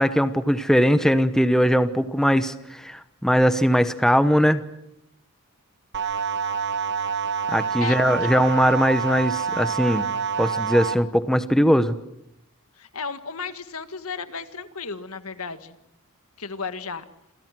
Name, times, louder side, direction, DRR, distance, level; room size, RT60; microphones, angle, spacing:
voice 1, 0.0-4.6 7.5-10.1 10.4-12.0, equal, ahead, 11 dB, 1.0 m, -20 dB
sound 1, 5.9-10.9, right 6 dB, 50° right, 1.2 m, -27 dB
voice 2, 7.8-8.3 12.8-15.8 16.4-17.0, left 5 dB, 75° left, 10 dB, 1.9 m, -34 dB
28.0 x 27.0 x 6.2 m, 0.80 s
head